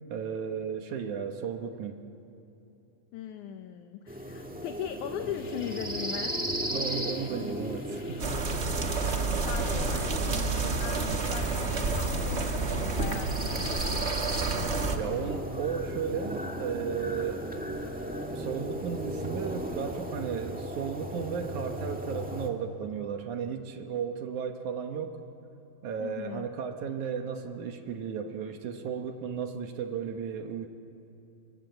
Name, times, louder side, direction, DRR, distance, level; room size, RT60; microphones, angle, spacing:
voice 1, 0.1-2.0 6.7-8.3 15.0-17.4 18.4-25.2 25.8-30.7, right 7 dB, 70° right, 5 dB, 2.4 m, -34 dB
voice 2, 3.1-6.4 9.4-13.8 26.0-26.5, left 10 dB, 70° left, 6 dB, 2.2 m, -39 dB
sound 1, 4.1-22.5, equal, 5° right, 0.6 m, -36 dB
sound 2, 5.2-12.6, left 3 dB, 50° left, 2.5 m, -46 dB
sound 3, 8.2-15.0, right 3 dB, 50° right, 0.7 m, -29 dB
26.5 x 25.0 x 7.9 m, 2.9 s
omnidirectional pair, 3.9 m